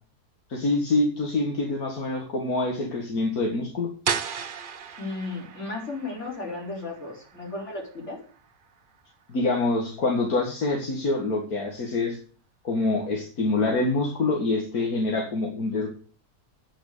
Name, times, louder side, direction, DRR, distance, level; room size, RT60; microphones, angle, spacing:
voice 1, 0.5-3.9 9.3-12.2 12.6-15.9, left 2 dB, 70° left, 0 dB, 2.5 m, -25 dB
sound 1, 4.0-9.7, right 7 dB, 45° right, 0.8 m, -36 dB
voice 2, 5.0-8.2, left 3 dB, 50° left, -2 dB, 5.0 m, -34 dB
9.4 x 9.0 x 6.8 m, 0.42 s
omnidirectional pair, 1.6 m